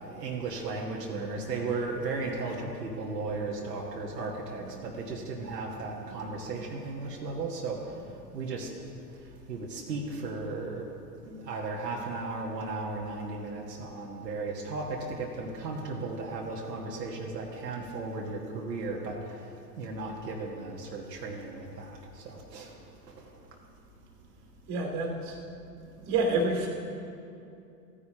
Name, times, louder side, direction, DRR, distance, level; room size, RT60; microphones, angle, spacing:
voice 1, 0.0-8.7 9.1-10.9 11.2-23.3 25.8-26.2, right 3 dB, 75° right, -1 dB, 1.5 m, -36 dB
voice 2, 24.7-25.4 26.1-26.7, right 2 dB, 35° right, 1 dB, 2.5 m, -28 dB
15.5 x 9.9 x 2.9 m, 2.6 s
hypercardioid pair, 110°, 49 cm